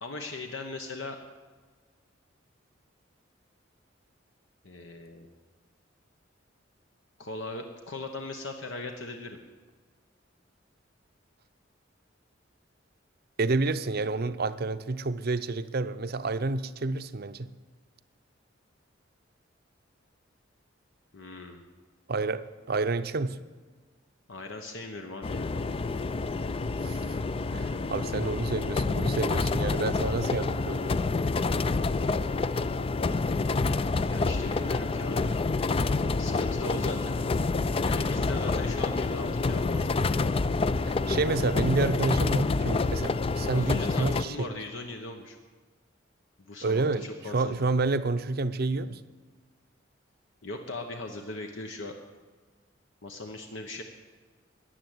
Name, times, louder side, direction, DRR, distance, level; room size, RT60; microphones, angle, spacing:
voice 1, 0.0-1.2 4.6-5.3 7.2-9.4 21.1-21.6 24.3-25.5 34.0-35.3 36.2-37.2 37.8-39.9 43.5-45.4 46.5-47.6 50.4-51.9 53.0-53.8, left 2 dB, 75° left, 1.1 m, -39 dB
voice 2, 13.4-17.5 22.1-23.4 26.8-27.2 27.5-31.0 40.8-44.5 46.6-49.0, right 3 dB, 55° right, 0.6 m, -29 dB
sound 1, 25.2-44.2, left 3 dB, 30° left, 0.4 m, -28 dB
14.0 x 10.0 x 8.0 m
head